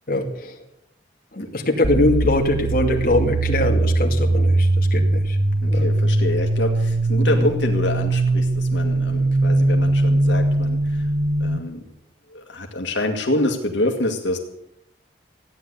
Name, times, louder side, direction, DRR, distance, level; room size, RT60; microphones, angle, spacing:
voice 1, 0.1-0.6 1.3-5.4 5.7-5.8 7.2-7.3, left 1 dB, 50° left, 1 dB, 2.4 m, -22 dB
sound 1, 1.8-11.6, right 2 dB, 60° right, 1.0 m, -20 dB
voice 2, 5.6-11.1 11.4-11.8 12.3-14.4, left 1 dB, 80° left, 2 dB, 2.0 m, -26 dB
15.5 x 9.9 x 8.2 m, 0.80 s
head